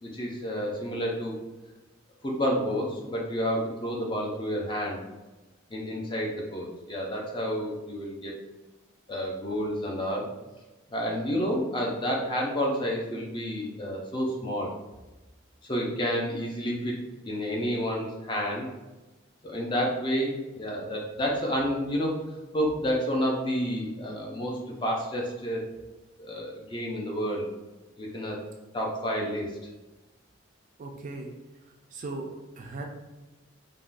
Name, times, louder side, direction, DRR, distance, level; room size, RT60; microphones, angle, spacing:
voice 1, 0.0-1.3 2.2-5.0 5.7-8.3 9.1-10.3 10.9-14.7 15.6-17.0 17.3-18.7 19.4-22.2 22.5-25.6 26.2-27.5 28.0-28.4 28.7-29.5, equal, 25° left, -2 dB, 0.4 m, -30 dB
voice 2, 30.8-31.3 31.6-32.9, right 3 dB, 40° right, 1 dB, 0.3 m, -38 dB
3.4 x 2.2 x 2.5 m, 1.1 s
head